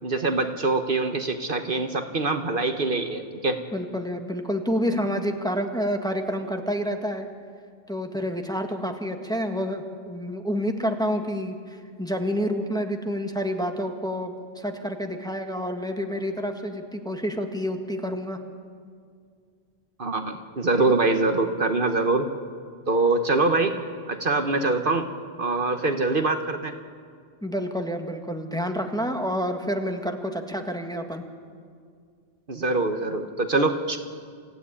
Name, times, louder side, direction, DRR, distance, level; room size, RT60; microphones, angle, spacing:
voice 1, 0.0-3.6 20.0-22.3 22.9-23.8 24.1-25.1 25.4-26.7 32.5-34.0, right 3 dB, 55° right, 7 dB, 1.3 m, -24 dB
voice 2, 3.7-7.3 7.9-18.4 27.4-31.2, equal, 5° left, 4 dB, 1.7 m, -28 dB
26.0 x 15.5 x 9.9 m, 2.1 s
omnidirectional pair, 1.1 m